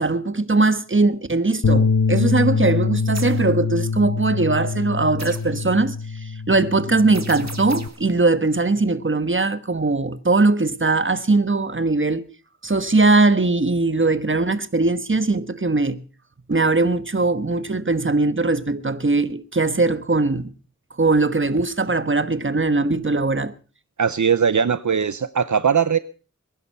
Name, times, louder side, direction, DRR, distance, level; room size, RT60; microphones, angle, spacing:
voice 1, 0.0-12.3 12.6-16.0 16.5-20.5 21.0-23.5, right 3 dB, 45° right, 1.3 m, -20 dB
Bass guitar, 1.6-7.9, left 4 dB, 80° left, 1.0 m, -24 dB
sound 1, 3.1-3.5 5.2-5.6 7.1-8.1, right 3 dB, 65° right, 1.8 m, -37 dB
voice 2, 24.0-26.0, right 7 dB, 80° right, 0.7 m, -19 dB
22.0 x 11.0 x 5.6 m
wide cardioid pair, 45°, 29 cm